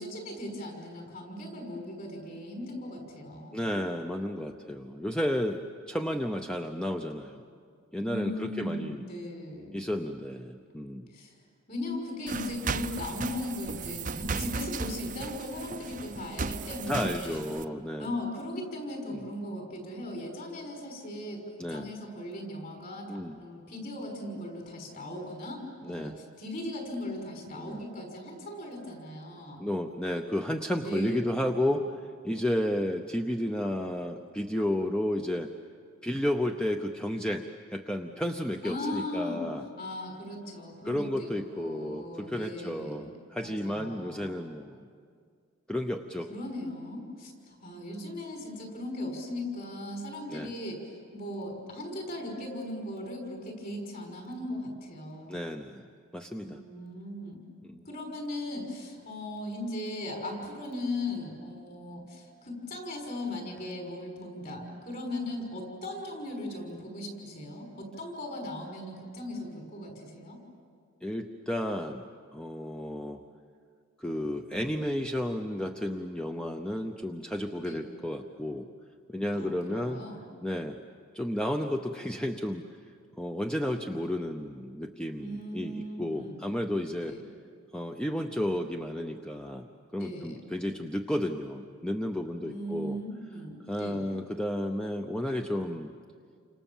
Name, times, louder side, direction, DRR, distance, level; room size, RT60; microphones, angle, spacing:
voice 1, 0.0-3.6 8.0-9.9 11.1-11.3 11.7-17.4 18.0-29.6 30.8-31.3 38.6-39.4 39.8-43.1 43.4-44.3 46.3-50.8 51.1-55.4 56.4-57.4 57.8-70.4 77.5-77.8 79.3-80.2 85.2-86.4 86.9-87.2 90.0-90.4 92.4-94.0, left 1 dB, 45° left, 2 dB, 5.9 m, -38 dB
voice 2, 3.5-7.4 7.9-9.0 9.7-11.1 16.9-18.2 19.1-19.2 21.6-21.9 23.1-23.4 25.8-26.2 27.5-27.8 29.6-35.5 36.0-37.5 37.7-39.6 40.8-44.8 45.7-46.3 50.3-50.5 55.3-55.9 56.1-56.6 57.6-57.8 71.0-72.1 72.3-73.2 74.0-78.7 79.1-80.0 80.4-80.8 81.1-82.6 83.2-87.2 87.7-89.7 89.9-93.0 93.7-95.9, left 1 dB, 5° left, 4 dB, 0.7 m, -32 dB
sound 1, 12.3-17.6, right 4 dB, 35° right, 0.6 m, -36 dB
29.5 x 26.5 x 7.3 m, 2.1 s
head